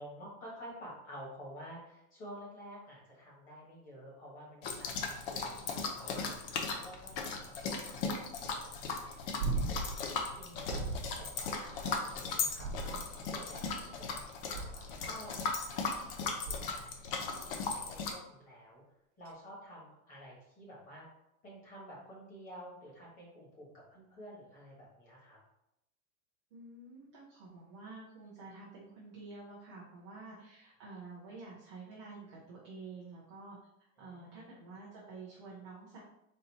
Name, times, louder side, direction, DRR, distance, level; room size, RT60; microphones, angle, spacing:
voice 1, 0.0-17.0 17.3-18.8 19.2-21.1 21.4-25.4 34.0-34.6, equal, 20° left, -5 dB, 1.4 m, -51 dB
sound 1, 4.6-18.1, left 4 dB, 45° left, 0.6 m, -37 dB
sound 2, 9.4-10.0 10.7-11.2 12.6-13.3 14.5-15.0 16.4-16.9 19.3-19.4, right 3 dB, 50° right, 0.7 m, -37 dB
voice 2, 26.5-36.0, right 3 dB, 25° right, -5 dB, 0.3 m, -49 dB
4.1 x 2.6 x 4.1 m, 0.83 s
supercardioid pair, 175°, 41 cm